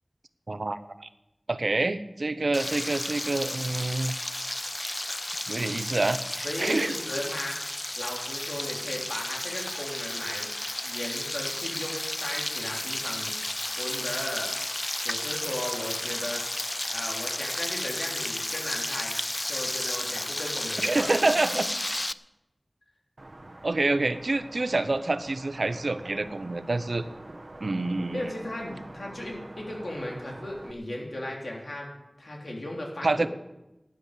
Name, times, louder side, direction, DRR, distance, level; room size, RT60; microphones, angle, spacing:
voice 1, 0.5-1.1 1.5-4.1 5.5-6.9 20.8-21.7 22.1-22.2 23.6-27.0 27.6-28.3 33.0-33.3, right 2 dB, 75° right, 12 dB, 0.7 m, -27 dB
Frying (food), 2.5-22.1, left 1 dB, 30° left, 0.4 m, -33 dB
voice 2, 6.4-7.6 8.0-10.5 10.8-13.4 13.8-14.5 15.0-16.4 16.9-19.1 19.5-21.1 21.5-21.6 28.1-31.9 32.2-33.3, left 1 dB, 75° left, -1 dB, 3.4 m, -36 dB
sound 1, 23.2-30.7, right 1 dB, 55° right, 1.1 m, -46 dB
12.0 x 10.5 x 8.2 m, 0.96 s
wide cardioid pair, 50°, 0 cm